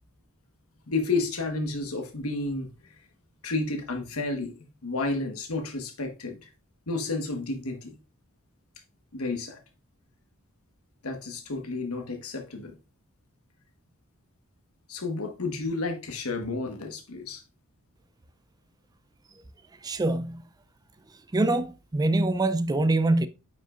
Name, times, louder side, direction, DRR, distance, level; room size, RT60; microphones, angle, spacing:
voice 1, 0.9-2.9 3.4-6.5 6.9-8.0 9.1-9.6 11.0-12.7 14.9-17.4, left 3 dB, 85° left, 1.3 m, -31 dB
voice 2, 19.8-20.4 21.3-23.3, right 2 dB, 20° right, 0.4 m, -24 dB
9.2 x 5.5 x 2.5 m
head